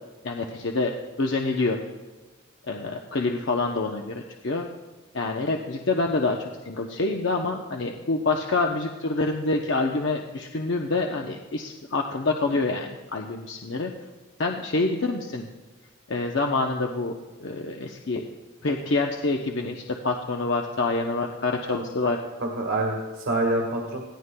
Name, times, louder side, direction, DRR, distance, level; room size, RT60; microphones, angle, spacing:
voice 1, 0.2-0.9 1.2-1.8 2.7-4.7 5.1-13.9 14.4-15.5 16.1-17.1 17.4-18.2 18.6-22.2, left 3 dB, 60° left, 2 dB, 0.7 m, -26 dB
voice 2, 22.4-24.1, right 2 dB, 80° right, -1 dB, 1.7 m, -27 dB
20.5 x 15.5 x 2.2 m, 1.2 s
head